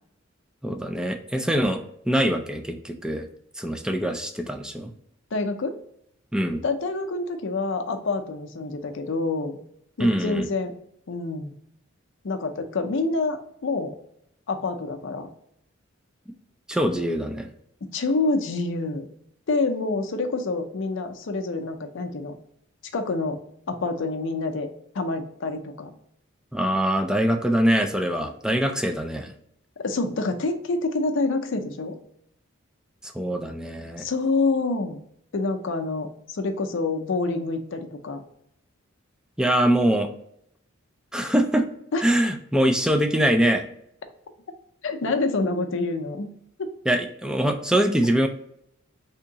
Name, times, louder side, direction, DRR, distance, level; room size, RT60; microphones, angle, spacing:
voice 1, 0.6-3.3 3.6-4.9 6.3-6.6 10.0-10.5 16.7-17.5 26.5-29.3 33.0-34.0 39.4-40.1 41.1-41.7 42.0-43.6 46.9-48.3, right 1 dB, 5° right, 6 dB, 0.3 m, -23 dB
voice 2, 5.3-5.8 6.6-9.6 10.0-10.7 11.1-11.5 12.2-13.9 14.5-15.3 17.8-19.1 19.5-22.3 22.9-23.4 23.7-24.7 24.9-25.9 29.8-32.0 34.0-35.0 35.3-38.2 41.9-42.0 44.8-46.3 46.6-46.7, left 3 dB, 65° left, 6 dB, 0.5 m, -27 dB
3.5 x 2.8 x 2.8 m, 0.71 s
head